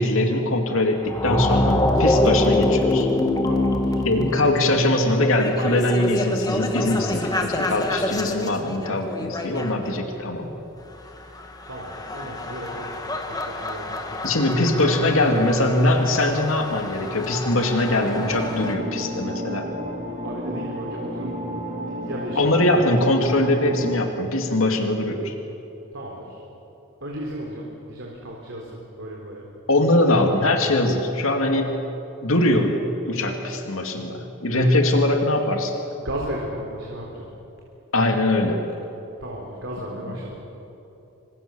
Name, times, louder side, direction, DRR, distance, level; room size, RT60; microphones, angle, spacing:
voice 1, 0.0-3.1 4.0-10.5 14.2-19.7 22.4-25.3 29.7-31.8 32.2-35.8 37.9-38.6, left 1 dB, 80° left, 3 dB, 2.5 m, -22 dB
sound 1, 1.0-9.9 11.4-18.7, left 1 dB, 20° left, 1.9 m, -26 dB
voice 2, 3.4-4.0 11.7-14.4 14.8-15.5 20.2-21.4 21.8-22.6 25.9-26.4 27.0-29.5 35.9-37.3 39.2-40.4, right 1 dB, 65° right, -2 dB, 3.7 m, -35 dB
sound 2, 18.1-24.0, equal, 35° right, 2.8 m, -32 dB
27.0 x 25.5 x 7.0 m, 3.0 s
head